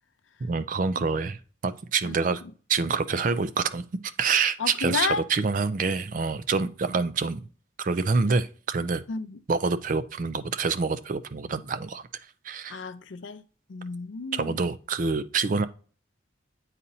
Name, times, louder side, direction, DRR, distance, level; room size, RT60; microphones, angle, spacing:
voice 1, 0.4-1.4 1.6-2.4 2.7-7.4 7.8-9.0 9.5-12.0 12.4-12.8 14.3-15.7, right 4 dB, 40° right, 0.4 m, -26 dB
voice 2, 4.6-5.2 9.1-9.4 12.7-13.4 13.7-14.6, left 5 dB, 70° left, 0.5 m, -31 dB
8.7 x 4.1 x 2.7 m
head